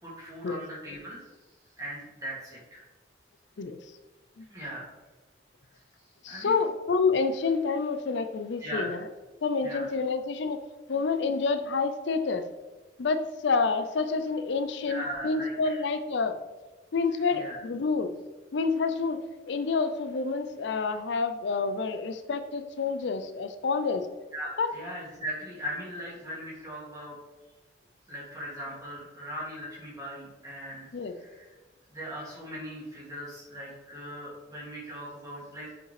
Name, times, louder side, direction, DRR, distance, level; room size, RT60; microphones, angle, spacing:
voice 1, 0.0-1.3 1.8-2.8 4.5-4.9 6.3-6.6 8.6-8.9 9.6-9.9 14.8-15.8 17.3-17.6 24.3-27.2 28.1-31.5 31.9-35.7, equal, 20° right, -6 dB, 2.3 m, -39 dB
voice 2, 6.2-9.0 9.4-10.6 10.9-12.4 13.0-16.4 16.9-18.1 18.5-19.2 19.5-24.0 24.6-24.7 30.9-31.1, left 4 dB, 70° left, 9 dB, 0.5 m, -28 dB
7.3 x 5.3 x 3.2 m, 1.2 s
head